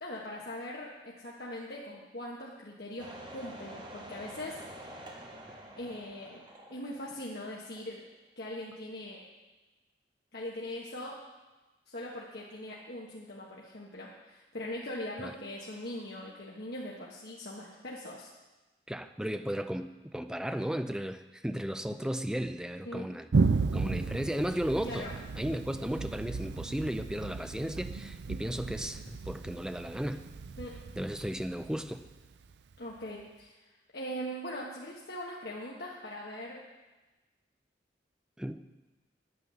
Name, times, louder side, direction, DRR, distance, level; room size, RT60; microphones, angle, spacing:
voice 1, 0.0-4.6 5.8-6.4 6.7-8.0 8.4-9.2 10.3-11.2 11.9-18.3 22.8-23.1 24.8-25.1 30.6-30.7 32.8-33.6 33.9-36.6, left 1 dB, 60° left, -4 dB, 1.5 m, -41 dB
sound 1, 3.0-7.5 7.8-7.9, right 1 dB, 25° right, 1.5 m, -47 dB
voice 2, 18.9-23.3 23.7-25.1 25.4-30.2 31.0-32.0 38.4-38.6, equal, 5° right, 9 dB, 0.5 m, -35 dB
Thunder, 23.3-32.7, right 4 dB, 70° right, 0.4 m, -34 dB
9.5 x 9.4 x 6.9 m, 1.1 s
head